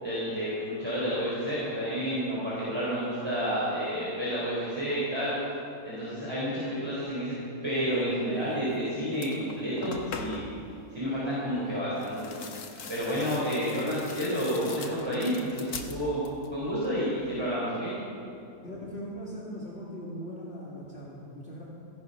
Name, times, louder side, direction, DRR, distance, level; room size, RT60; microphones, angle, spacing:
voice 1, 0.0-5.3 5.8-7.3 7.6-10.4 10.9-12.4 12.9-16.2 16.5-17.9, equal, 15° right, -9 dB, 4.4 m, -30 dB
sound 1, 8.7-8.8 9.1-10.6 12.0-16.6 16.8-17.4, left 5 dB, 90° left, 1.7 m, -42 dB
voice 2, 18.6-21.6, equal, 45° left, -6 dB, 2.5 m, -40 dB
16.0 x 15.5 x 5.7 m, 2.6 s
omnidirectional pair, 1.6 m